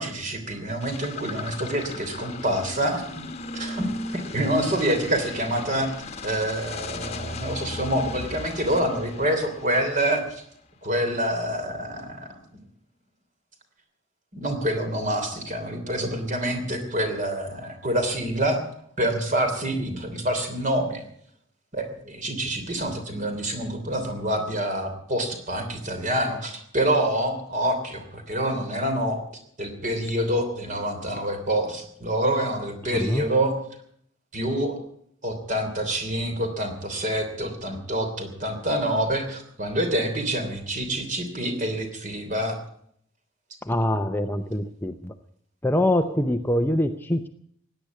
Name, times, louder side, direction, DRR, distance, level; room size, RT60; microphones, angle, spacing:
voice 1, 0.0-3.2 3.5-5.9 6.2-10.4 10.8-12.6 14.3-18.6 19.0-21.0 21.7-29.2 29.6-33.6 34.3-34.8 35.2-42.6, right 1 dB, 40° right, 6 dB, 3.2 m, -27 dB
sound 1, 0.8-10.3, left 2 dB, 30° left, 1.2 m, -37 dB
voice 2, 32.9-33.2 43.6-45.1 45.6-47.3, left 1 dB, 10° left, 7 dB, 0.6 m, -24 dB
17.0 x 10.0 x 8.3 m, 0.66 s
head